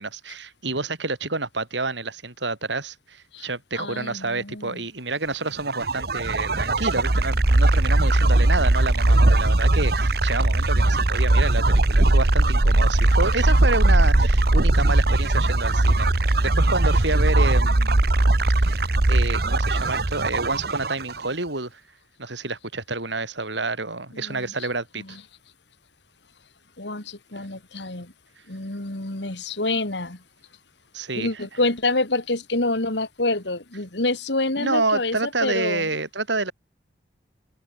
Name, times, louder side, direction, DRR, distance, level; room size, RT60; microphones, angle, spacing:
voice 1, 0.0-18.0 18.6-21.8 22.2-25.2 30.9-31.3 34.6-36.5, right 3 dB, 80° right, 4.9 m, -28 dB
voice 2, 3.8-4.8 24.1-24.5 25.0-25.2 26.8-28.1 28.5-30.2 31.1-35.9, left 2 dB, 75° left, 3.0 m, -27 dB
sound 1, 5.6-21.3, right 2 dB, 55° right, 1.2 m, -19 dB
head